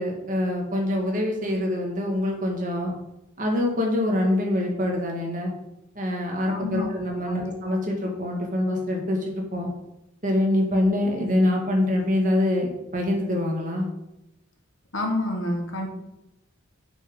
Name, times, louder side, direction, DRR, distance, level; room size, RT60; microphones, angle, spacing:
voice 1, 0.0-2.9 3.4-5.5 5.9-9.7 10.2-13.9, left 1 dB, 40° right, 0 dB, 1.8 m, -25 dB
voice 2, 6.5-6.9 7.3-7.5 14.9-15.9, left 1 dB, 70° left, 3 dB, 1.5 m, -28 dB
7.0 x 6.1 x 5.4 m, 0.90 s
head